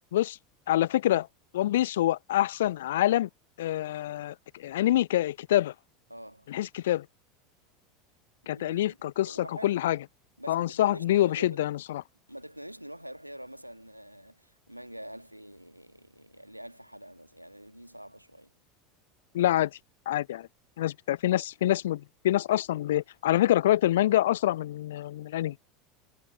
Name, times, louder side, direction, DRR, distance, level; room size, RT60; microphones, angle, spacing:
voice 1, 0.7-1.3 1.5-3.3 3.6-5.7 6.5-7.1 8.5-10.0 10.5-12.0 19.3-19.7 20.1-20.5 20.8-25.6, left 13 dB, 65° left, 0.4 m, -26 dB
voice 2, 6.1-6.5 8.5-9.0 9.2-9.8 10.4-11.6 12.3-18.5, equal, 90° right, 2.0 m, -45 dB
figure-of-eight pair, 75°, 0 cm